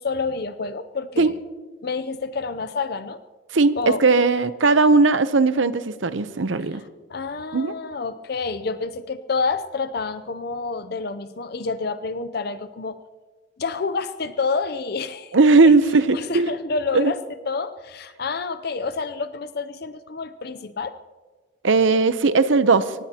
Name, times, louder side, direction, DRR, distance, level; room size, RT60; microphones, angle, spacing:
voice 1, 0.0-1.3 1.8-3.2 3.8-4.0 7.1-13.0 13.6-15.3 15.6-15.7 16.1-17.2 17.5-20.9 21.9-22.0, left 4 dB, 50° left, 12 dB, 0.5 m, -28 dB
voice 2, 3.5-6.8 7.5-7.7 15.3-16.5 16.9-17.1 21.6-22.9, right 3 dB, 75° right, 13 dB, 0.8 m, -18 dB
24.5 x 18.5 x 2.9 m, 1.4 s
head